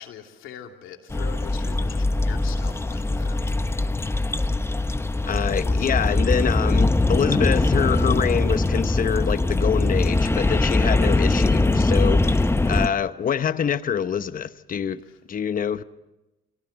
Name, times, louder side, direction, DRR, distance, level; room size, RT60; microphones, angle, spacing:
voice 1, 0.0-3.9 5.6-5.9 15.0-15.2, left 9 dB, 90° left, 2.7 m, -43 dB
sound 1, 1.1-12.9, left 2 dB, 10° left, 0.8 m, -21 dB
voice 2, 5.2-15.0 15.3-15.8, left 7 dB, 45° left, 0.9 m, -25 dB
24.5 x 17.5 x 8.0 m
cardioid pair, 90°, 20 cm